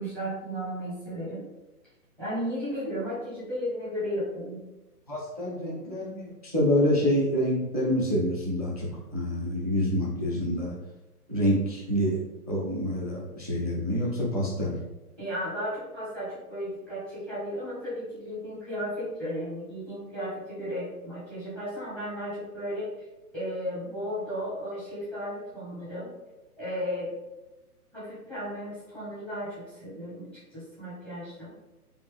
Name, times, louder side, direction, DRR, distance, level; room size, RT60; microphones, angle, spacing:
voice 1, 0.0-1.4 2.2-4.6 5.6-5.9 15.2-22.9 23.3-26.1 26.6-27.1 27.9-31.5, equal, 5° left, -12 dB, 1.0 m, -34 dB
voice 2, 5.1-10.7 11.3-12.2 12.5-14.7, equal, 30° right, -4 dB, 0.4 m, -27 dB
4.3 x 2.7 x 3.2 m, 1.0 s
hypercardioid pair, 160°, 46 cm